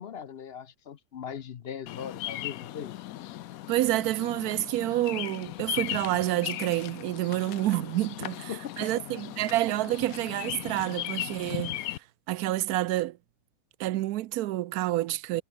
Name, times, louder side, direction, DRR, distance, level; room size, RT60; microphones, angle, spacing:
voice 1, 0.0-2.9 8.5-9.0, left 8 dB, 50° left, 0.8 m, -39 dB
Bird vocalization bird call bird song, 1.9-12.0, left 14 dB, 75° left, 1.0 m, -37 dB
voice 2, 3.7-11.9 12.3-13.2 13.8-15.4, right 15 dB, 80° right, 1.1 m, -28 dB
omnidirectional pair, 1.6 m